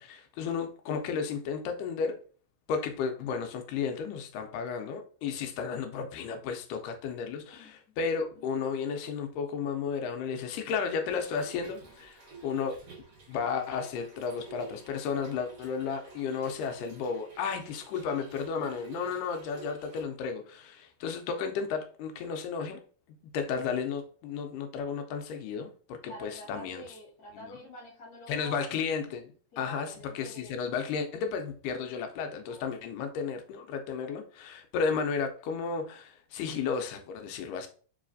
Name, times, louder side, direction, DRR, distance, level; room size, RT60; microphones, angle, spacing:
voice 1, 0.0-2.2 2.7-12.8 13.3-22.8 23.3-26.8 28.3-37.7, left 6 dB, 85° left, 5 dB, 2.1 m, -33 dB
voice 2, 7.5-8.0 26.0-28.7 29.5-30.7 32.1-32.7, right 1 dB, 35° left, -5 dB, 2.0 m, -47 dB
Trickle dribble / Fill (with liquid), 11.0-20.0, right 5 dB, 60° right, 1.3 m, -50 dB
4.6 x 3.1 x 2.5 m, 0.42 s
omnidirectional pair, 3.7 m